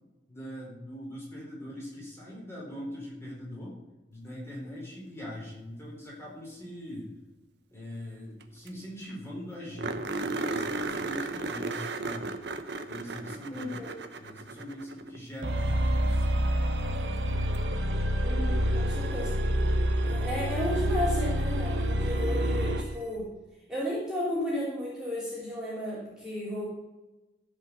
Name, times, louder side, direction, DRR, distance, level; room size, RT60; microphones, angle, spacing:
voice 1, 0.3-3.8 4.1-7.1 7.7-12.3 12.9-13.8 14.2-16.5, equal, 15° left, -5 dB, 4.2 m, -41 dB
sound 1, 8.4-8.5 8.7-8.8 9.1-9.2 9.8-15.2 17.5-17.6 20.5-20.6, right 3 dB, 65° right, 0.9 m, -35 dB
voice 2, 13.5-14.0 18.2-19.4 20.0-23.3 23.7-26.6, left 1 dB, 5° right, -8 dB, 3.3 m, -33 dB
sound 2, 15.4-22.9, equal, 85° right, 1.1 m, -27 dB
14.5 x 5.4 x 6.8 m, 1.1 s
head